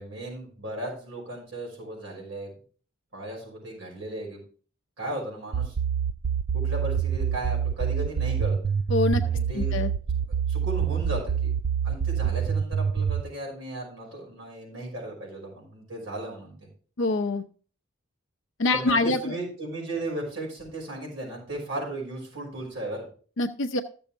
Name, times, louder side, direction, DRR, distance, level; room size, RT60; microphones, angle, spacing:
voice 1, 0.0-2.5 3.1-4.4 5.0-5.8 6.5-8.6 9.2-9.7 10.1-11.5 11.8-16.6 18.7-23.1, right 1 dB, 65° right, -1 dB, 5.6 m, -36 dB
sound 1, 5.5-13.2, right 7 dB, 85° right, 0.5 m, -26 dB
voice 2, 8.9-9.2 9.6-9.9 17.0-17.4 18.6-19.4 23.4-23.8, left 2 dB, 60° left, 5 dB, 0.7 m, -25 dB
14.0 x 7.0 x 3.5 m, 0.41 s
head